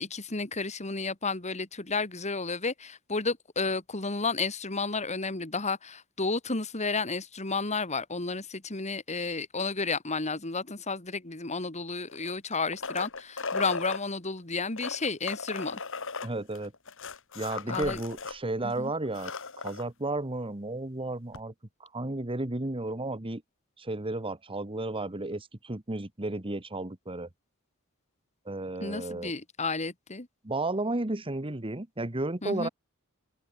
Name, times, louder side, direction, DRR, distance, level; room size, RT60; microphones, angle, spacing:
voice 1, 0.0-15.8 17.7-18.0 18.6-18.9 28.8-30.3 32.4-32.7, left 4 dB, 30° left, 2.5 m, -32 dB
sound 1, 12.1-14.0 14.7-18.4 18.7-18.8 19.1-19.8 21.3-21.4, left 4 dB, 60° left, 4.5 m, -36 dB
voice 2, 16.2-16.7 17.3-21.5 21.8-23.4 23.8-27.3 28.4-29.3 30.4-32.7, right 2 dB, 25° right, 1.4 m, -33 dB
open air
head